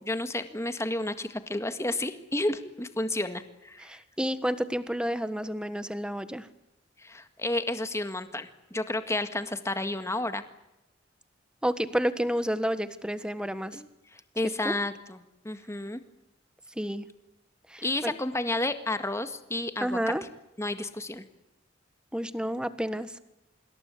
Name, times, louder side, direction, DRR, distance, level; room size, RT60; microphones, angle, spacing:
voice 1, 0.0-3.9 7.0-10.4 13.7-15.2 15.4-16.0 17.8-20.0 20.6-21.2, left 2 dB, 15° left, 9 dB, 1.8 m, -31 dB
voice 2, 3.8-6.5 11.6-13.8 14.6-14.7 16.8-17.1 17.7-18.2 19.8-20.2 22.1-23.2, equal, 5° right, 12 dB, 1.4 m, -30 dB
26.5 x 22.0 x 8.5 m, 0.90 s
head